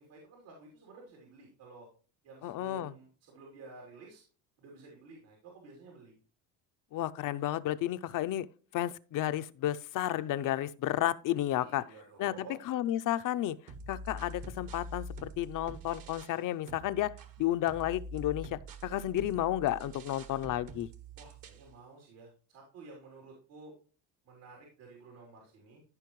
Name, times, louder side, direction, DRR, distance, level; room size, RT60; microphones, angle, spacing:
voice 1, 0.1-1.9 2.2-4.2 4.6-6.2 11.6-12.6 21.2-23.7 24.2-25.8, right 3 dB, 80° right, 3.3 m, -52 dB
voice 2, 2.4-2.9 6.9-8.5 8.7-11.8 12.2-13.6 13.9-17.1 17.4-20.9, left 13 dB, 45° left, 0.5 m, -32 dB
sound 1, 13.7-16.4 16.7-21.7, right 1 dB, 50° right, 1.2 m, -46 dB
14.5 x 5.1 x 3.1 m
cardioid pair, 120°, 44 cm